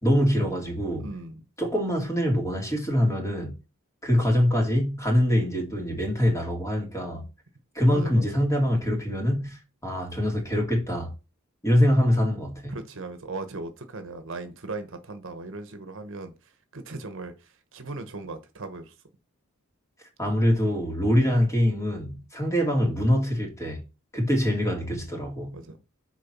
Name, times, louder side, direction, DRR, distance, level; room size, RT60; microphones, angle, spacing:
voice 1, 0.0-1.1 1.6-3.6 4.0-7.3 7.7-11.1 11.6-12.8 20.2-23.8 24.1-25.6, equal, 15° left, 2.6 m, -24 dB
voice 2, 1.0-1.4 7.9-8.2 12.7-18.9 25.5-25.8, right 3 dB, 65° right, 1.1 m, -38 dB
6.9 x 4.7 x 6.0 m
head